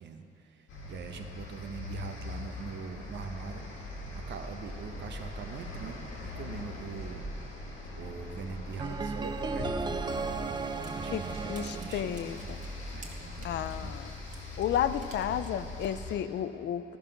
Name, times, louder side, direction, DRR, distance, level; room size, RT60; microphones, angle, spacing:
voice 1, 0.0-3.7 4.1-7.3 7.9-10.5 10.9-12.6 12.9-13.9, right 6 dB, 65° right, 5 dB, 0.9 m, -43 dB
sound 1, 0.7-16.1, left 1 dB, 85° left, 2.0 m, -41 dB
sound 2, 8.8-12.9, right 4 dB, 20° right, 0.4 m, -36 dB
sound 3, 10.4-16.2, right 3 dB, 40° right, 1.5 m, -55 dB
voice 2, 11.1-12.6 13.4-14.1 14.6-16.8, left 10 dB, 60° left, 12 dB, 0.4 m, -32 dB
13.0 x 5.5 x 5.7 m, 2.7 s
cardioid pair, 90°, 20 cm